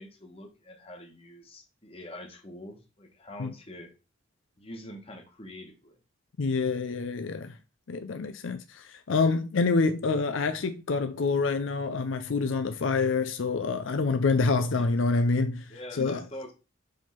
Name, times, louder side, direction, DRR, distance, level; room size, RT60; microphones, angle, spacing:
voice 1, 0.0-3.9 4.6-6.0 14.7-14.9 15.7-16.5, left 1 dB, 30° left, 1.4 m, -44 dB
voice 2, 6.4-7.6 7.9-16.2, left 4 dB, 70° left, 0.5 m, -27 dB
5.3 x 3.6 x 5.7 m
head